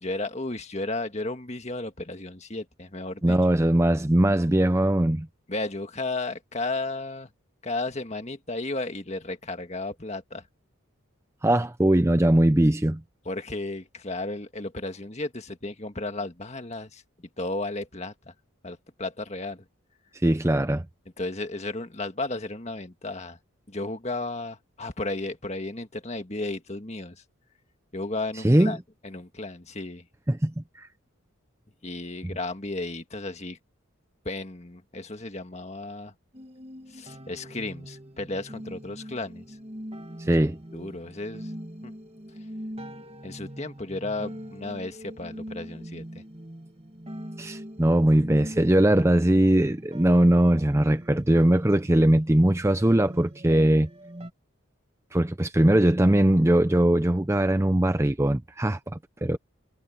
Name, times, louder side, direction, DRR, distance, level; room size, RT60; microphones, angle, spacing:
voice 1, 0.0-3.4 5.5-7.3 7.6-10.5 13.3-18.3 18.6-19.6 21.2-23.4 23.7-27.2 27.9-30.1 31.8-33.6 34.3-36.1 36.9-39.6 40.7-41.5 41.8-41.9 42.4-42.5 43.2-46.2, left 2 dB, 30° left, 1.8 m, -34 dB
voice 2, 3.2-5.3 11.4-13.0 20.2-20.8 28.4-28.8 30.3-30.9 40.2-40.6 47.4-53.9 55.1-59.4, right 1 dB, 15° right, 0.5 m, -21 dB
sound 1, 36.3-54.3, equal, 30° right, 1.8 m, -42 dB
head